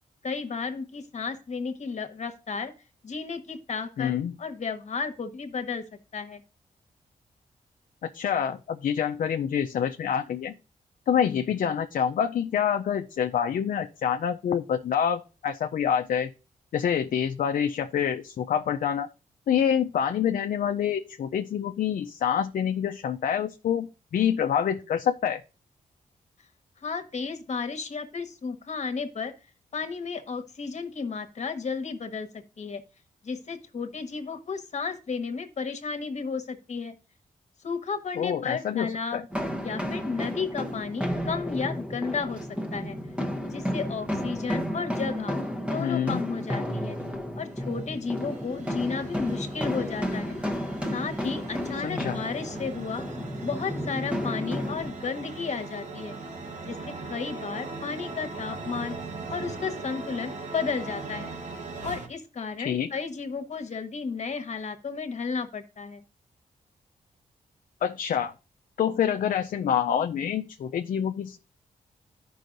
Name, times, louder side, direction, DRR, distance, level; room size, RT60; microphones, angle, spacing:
voice 1, 0.2-2.7 3.0-4.1 4.4-5.8 6.1-6.4 26.8-29.3 29.7-32.8 33.2-36.9 37.6-39.3 39.6-43.0 43.4-45.4 45.7-47.0 47.3-50.4 50.9-53.0 53.4-56.2 56.7-59.0 59.3-61.3 61.8-66.0, left 5 dB, 55° left, 8 dB, 1.2 m, -33 dB
voice 2, 4.0-4.4 8.0-10.5 11.1-16.3 16.7-19.1 19.5-25.4 38.2-39.2 45.8-46.2 51.8-52.2 62.6-62.9 67.8-68.3 68.8-71.4, left 8 dB, 70° left, 6 dB, 0.5 m, -27 dB
sound 1, 39.3-54.9, equal, 10° right, 0.9 m, -32 dB
sound 2, 47.5-62.1, right 3 dB, 55° right, 1.5 m, -40 dB
13.5 x 5.5 x 2.6 m, 0.34 s
cardioid pair, 85°, 14 cm